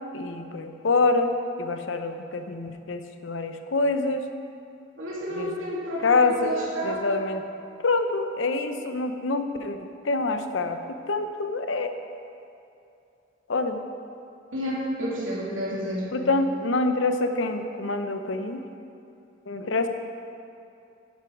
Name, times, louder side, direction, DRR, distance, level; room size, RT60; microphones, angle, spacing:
voice 1, 0.1-1.3 1.6-4.2 5.4-5.5 6.0-6.5 6.8-7.4 7.8-9.8 10.0-10.8 11.1-11.9 13.5-13.8 16.1-18.6 19.5-19.9, left 3 dB, 70° left, 7 dB, 0.7 m, -26 dB
voice 2, 5.0-7.0 14.5-16.1, equal, 80° right, -5 dB, 2.8 m, -30 dB
11.5 x 9.8 x 4.6 m, 2.6 s
head